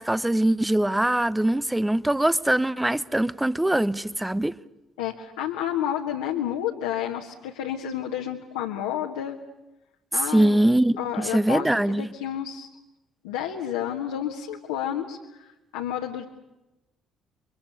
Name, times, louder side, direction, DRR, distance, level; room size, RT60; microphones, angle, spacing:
voice 1, 0.0-4.6 10.3-12.1, right 1 dB, 10° right, 1.0 m, -22 dB
voice 2, 5.0-9.4 10.1-10.6 11.0-12.7 13.2-16.2, left 10 dB, 70° left, 1.6 m, -30 dB
29.5 x 24.0 x 6.8 m
figure-of-eight pair, 45°, 0 cm